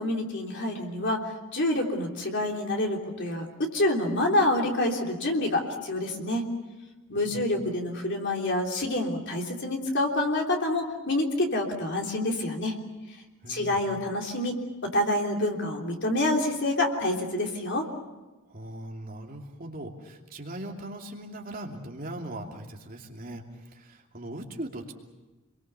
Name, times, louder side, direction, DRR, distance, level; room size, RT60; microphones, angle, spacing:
voice 1, 0.0-6.5 7.1-12.8 13.5-14.6 14.8-17.9, left 1 dB, 55° left, 1 dB, 3.4 m, -27 dB
voice 2, 13.4-13.8 18.5-24.9, right 1 dB, 40° right, 1 dB, 2.8 m, -40 dB
28.5 x 22.5 x 6.9 m, 1.1 s
head